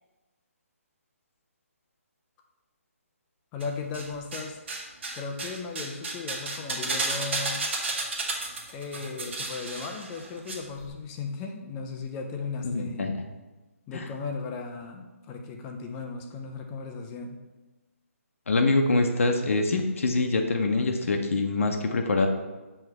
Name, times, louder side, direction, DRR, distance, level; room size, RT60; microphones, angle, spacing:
voice 1, 3.5-4.6 5.1-7.7 8.7-13.1 13.9-17.4, left 4 dB, 15° left, 3 dB, 0.4 m, -36 dB
sound 1, 3.6-4.4 4.7-10.6 10.8-10.9, right 3 dB, 50° right, 1.2 m, -32 dB
voice 2, 12.6-13.1 13.9-14.1 18.5-22.3, left 3 dB, 65° left, 3 dB, 0.7 m, -24 dB
6.4 x 3.3 x 4.7 m, 1.2 s
hypercardioid pair, 165°, 8 cm